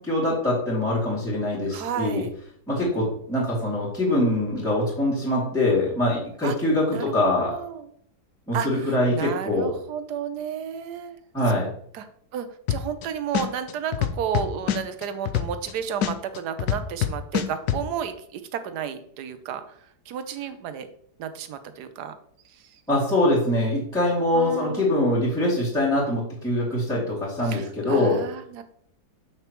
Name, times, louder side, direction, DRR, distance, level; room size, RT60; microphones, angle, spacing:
voice 1, 0.0-2.2 2.7-7.6 8.5-9.7 11.3-11.7 22.9-28.2, left 1 dB, ahead, -10 dB, 2.4 m, -23 dB
voice 2, 1.7-2.3 6.4-6.6 6.9-7.9 8.5-11.2 11.5-11.6 11.9-12.1 12.3-19.8 20.1-20.9 21.2-22.1 22.4-22.8 24.3-24.9 27.4-28.6, right 8 dB, 80° right, 10 dB, 1.3 m, -32 dB
sound 1, 12.7-13.0 13.3-15.7 16.0-17.8, left 10 dB, 80° left, 1.1 m, -24 dB
7.3 x 6.5 x 3.0 m, 0.62 s
omnidirectional pair, 1.7 m